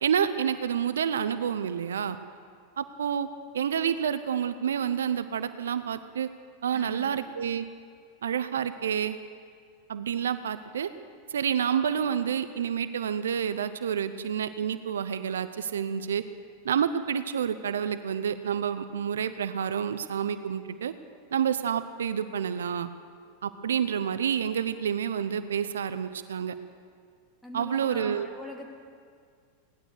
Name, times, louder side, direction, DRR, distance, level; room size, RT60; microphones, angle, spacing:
voice 1, 0.0-2.2 2.8-3.3 3.5-6.3 6.6-7.6 8.2-9.2 9.9-10.9 11.3-16.2 16.6-20.9 21.3-22.9 23.4-26.5 27.5-28.3, right 8 dB, 80° right, 12 dB, 0.6 m, -29 dB
voice 2, 6.7-7.4 27.4-28.7, left 1 dB, 5° left, 0 dB, 2.8 m, -43 dB
18.0 x 11.5 x 6.5 m, 2.1 s
hypercardioid pair, 95°, 0 cm